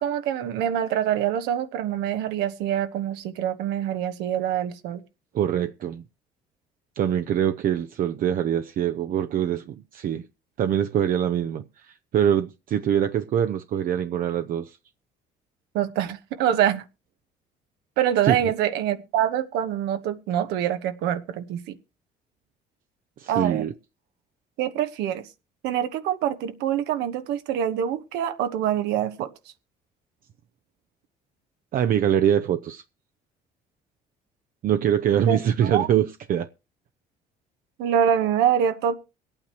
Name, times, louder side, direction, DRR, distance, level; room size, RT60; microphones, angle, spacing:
voice 1, 0.0-5.0 15.7-16.8 18.0-21.6 23.3-23.7 24.6-25.2 25.6-29.3 35.3-35.4 35.6-35.9 37.8-38.9, right 9 dB, 90° right, 1.1 m, -25 dB
voice 2, 5.3-6.0 7.0-10.3 10.6-14.8 18.2-18.4 23.2-23.7 31.7-32.8 34.6-36.5, right 9 dB, 55° right, 0.6 m, -24 dB
23.5 x 8.8 x 3.0 m
cardioid pair, 110°, 17 cm